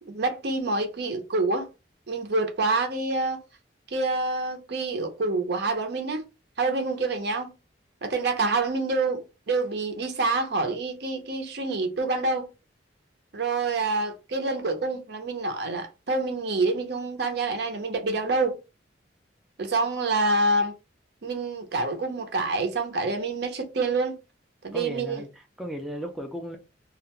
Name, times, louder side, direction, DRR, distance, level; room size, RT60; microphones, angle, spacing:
voice 1, 0.1-1.7 2.1-3.4 3.9-6.3 6.6-7.5 8.0-12.5 13.3-18.6 19.6-20.7 21.2-24.2 24.6-25.2, right 3 dB, 60° right, 0.6 m, -27 dB
voice 2, 24.7-26.6, right 1 dB, ahead, 0.4 m, -35 dB
2.4 x 2.1 x 2.9 m
head